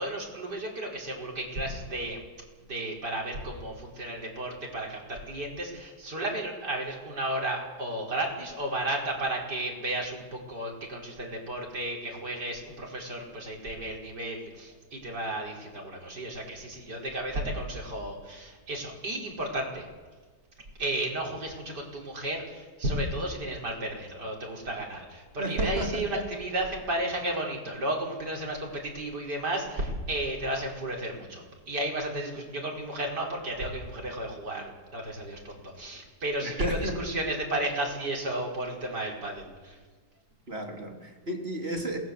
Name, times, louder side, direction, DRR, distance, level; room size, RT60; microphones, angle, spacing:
voice 1, 0.0-2.2 2.6-19.9 20.8-39.8, right 1 dB, 65° right, -1 dB, 5.4 m, -33 dB
voice 2, 25.4-26.2 36.4-37.0 40.5-42.0, right 1 dB, 35° right, 1 dB, 3.8 m, -33 dB
27.0 x 19.5 x 7.8 m, 1.4 s
omnidirectional pair, 1.9 m